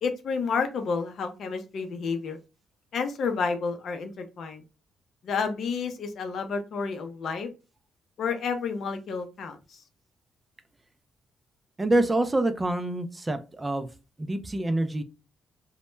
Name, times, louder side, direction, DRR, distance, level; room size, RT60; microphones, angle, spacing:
voice 1, 0.0-2.4 2.9-4.6 5.2-7.5 8.2-9.8, left 5 dB, 60° left, 6 dB, 0.5 m, -30 dB
voice 2, 11.8-13.9 14.2-15.0, right 1 dB, 20° right, 9 dB, 0.3 m, -26 dB
2.1 x 2.1 x 3.0 m, 0.31 s
cardioid pair, 90°, 0 cm